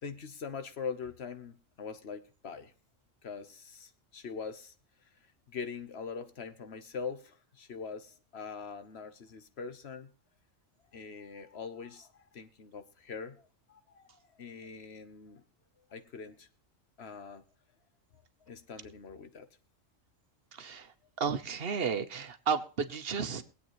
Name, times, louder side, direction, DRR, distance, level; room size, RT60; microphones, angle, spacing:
voice 1, 0.0-2.7 3.2-4.7 5.0-5.1 5.5-10.1 10.9-15.4 15.9-16.5 17.0-17.4 18.5-19.5, left 5 dB, 55° left, 1.3 m, -43 dB
voice 2, 21.2-23.4, right 6 dB, 50° right, 1.1 m, -32 dB
23.0 x 8.5 x 3.1 m
omnidirectional pair, 1.3 m